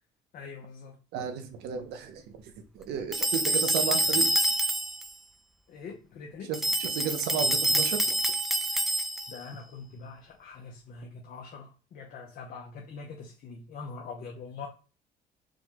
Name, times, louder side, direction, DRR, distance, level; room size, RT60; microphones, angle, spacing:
voice 1, 0.3-1.0 5.7-6.5 9.3-14.7, left 4 dB, 55° left, 0.8 m, -43 dB
voice 2, 1.1-2.4 2.7-4.3 6.5-8.2, right 7 dB, 80° right, 0.7 m, -33 dB
sound 1, 3.1-5.1 6.5-9.4, right 1 dB, ahead, 0.4 m, -27 dB
4.8 x 2.3 x 3.7 m
cardioid pair, 110°, 17 cm